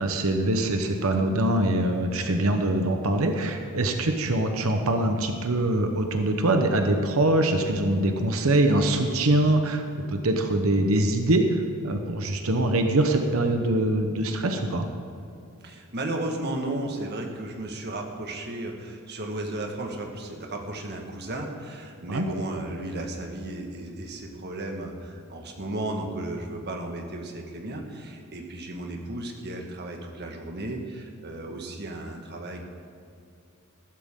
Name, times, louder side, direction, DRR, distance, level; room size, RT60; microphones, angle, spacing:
voice 1, 0.0-14.9 22.1-22.3, right 1 dB, 70° right, 5 dB, 1.0 m, -23 dB
voice 2, 15.6-32.6, right 1 dB, 50° right, 2 dB, 1.6 m, -34 dB
14.5 x 12.5 x 3.7 m, 2.5 s
head